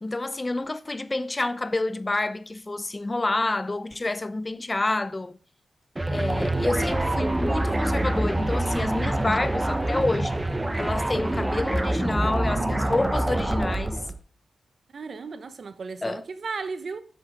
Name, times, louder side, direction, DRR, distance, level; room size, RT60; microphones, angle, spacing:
voice 1, 0.0-5.4 6.1-10.3 10.8-14.0 16.0-16.2, left 2 dB, 20° left, 0.7 m, -28 dB
sound 1, 6.0-14.2, right 1 dB, 15° right, 1.0 m, -26 dB
voice 2, 14.9-17.0, right 4 dB, 55° right, 1.0 m, -35 dB
9.3 x 6.3 x 5.1 m
wide cardioid pair, 105°, 0 cm